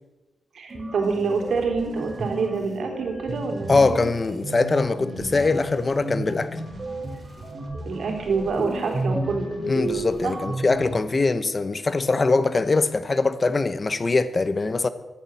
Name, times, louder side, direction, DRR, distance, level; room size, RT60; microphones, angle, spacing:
voice 1, 0.5-4.0 7.8-9.5 10.2-10.4, right 4 dB, 70° right, 3.9 m, -26 dB
sound 1, 0.7-11.0, right 1 dB, 30° right, 4.8 m, -32 dB
voice 2, 3.7-6.6 9.7-14.9, left 3 dB, 35° left, 0.9 m, -22 dB
16.0 x 12.0 x 7.3 m
cardioid pair, 90°, 0 cm